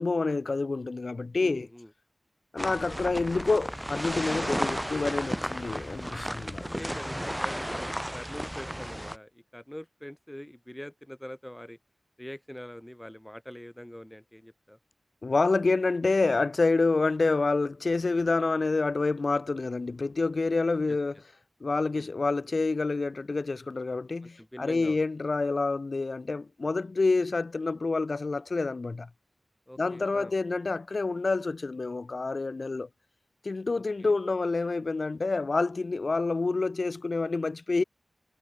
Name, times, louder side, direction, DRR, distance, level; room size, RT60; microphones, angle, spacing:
voice 1, 0.0-1.7 2.5-6.8 15.2-21.2 21.6-29.1 29.8-32.9 33.4-37.8, left 3 dB, 65° left, 0.3 m, -28 dB
voice 2, 1.4-1.9 2.9-3.3 6.6-11.8 12.2-14.8 20.9-21.0 21.9-22.1 24.2-25.0 29.7-30.3 33.7-34.1, equal, 10° left, 5.6 m, -44 dB
sound 1, 2.6-9.2, equal, 5° right, 0.6 m, -33 dB
wide cardioid pair, 45°, 0 cm